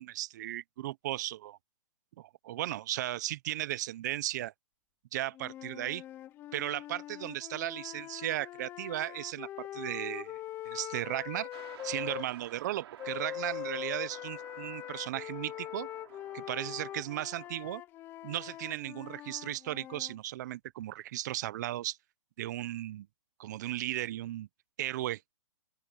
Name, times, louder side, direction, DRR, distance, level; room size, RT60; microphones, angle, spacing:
voice 1, 0.0-1.6 2.2-4.5 5.1-6.0 6.5-10.4 10.7-11.5 11.8-15.9 16.3-17.8 18.2-22.0 22.4-23.1 23.4-24.5 24.8-25.2, right 14 dB, 35° right, 0.6 m, -36 dB
sound 1, 5.3-12.3 13.0-20.2, left 13 dB, 10° left, 0.6 m, -42 dB
sound 2, 11.5-17.5, right 11 dB, 50° right, 5.0 m, -52 dB
open air
hypercardioid pair, 160°, 17 cm